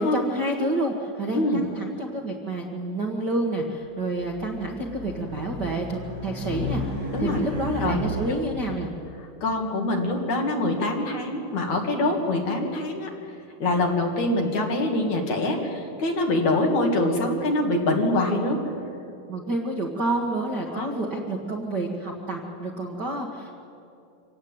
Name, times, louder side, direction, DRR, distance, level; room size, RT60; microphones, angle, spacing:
voice 1, 0.0-6.8 7.2-8.9 19.3-23.6, right 1 dB, 45° right, 1 dB, 1.4 m, -29 dB
voice 2, 1.3-1.7 7.1-7.4 7.8-8.0 9.2-13.1 13.6-18.6 20.7-20.9, left 2 dB, 55° left, 1 dB, 3.5 m, -24 dB
Race car auto racing, 4.1-8.5, left 1 dB, 25° right, 7.9 m, -33 dB
26.0 x 18.0 x 8.8 m, 2.7 s
omnidirectional pair, 4.3 m